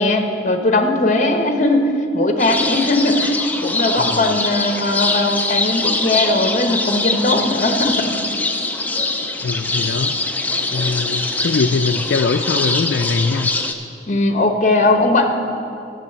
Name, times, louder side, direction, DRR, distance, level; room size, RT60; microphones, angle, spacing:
voice 1, 0.0-1.9 2.1-8.1 14.1-15.3, left 2 dB, 45° left, 5 dB, 1.0 m, -18 dB
sound 1, 2.4-13.7, left 2 dB, 10° left, 0.5 m, -23 dB
voice 2, 4.0-4.4 9.4-10.2 10.7-13.5, left 4 dB, 80° left, 7 dB, 0.4 m, -22 dB
12.0 x 7.2 x 6.8 m, 2.6 s
head